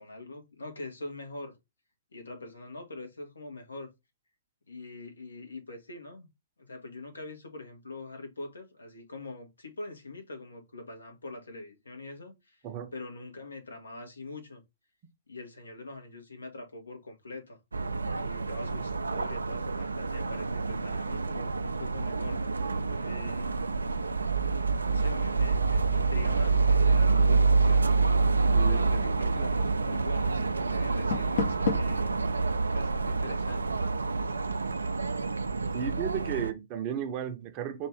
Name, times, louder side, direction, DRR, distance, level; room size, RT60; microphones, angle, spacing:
voice 1, 0.0-1.6 2.1-3.9 4.7-6.3 6.6-12.6 12.9-14.6 15.3-17.6 18.1-23.6 23.9-24.0 24.8-27.9 28.7-32.1 32.4-33.7, left 2 dB, 75° left, 1.2 m, -43 dB
sound 1, 17.7-36.5, right 4 dB, 80° right, 0.4 m, -27 dB
Door, 30.8-32.1, left 5 dB, 55° left, 0.8 m, -31 dB
voice 2, 35.7-37.9, right 9 dB, 35° right, 0.7 m, -34 dB
4.6 x 2.5 x 3.2 m
figure-of-eight pair, 120°, 0 cm